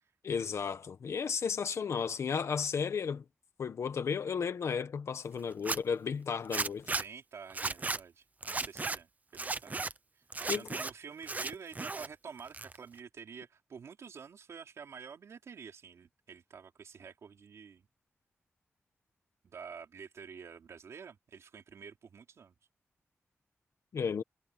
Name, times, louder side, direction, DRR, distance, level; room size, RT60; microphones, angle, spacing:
voice 1, 0.2-3.2 3.6-6.9 10.5-10.7 23.9-24.2, left 6 dB, 80° left, 1.5 m, -33 dB
Zipper (clothing), 5.5-5.8 6.5-7.0 7.5-8.0 8.4-9.0 9.3-9.9 10.3-10.9 11.2-12.1 12.4-13.0, right 3 dB, 35° right, 0.8 m, -35 dB
voice 2, 6.9-17.9 19.4-22.5, right 6 dB, 90° right, 3.6 m, -49 dB
wide cardioid pair, 95°, 5 cm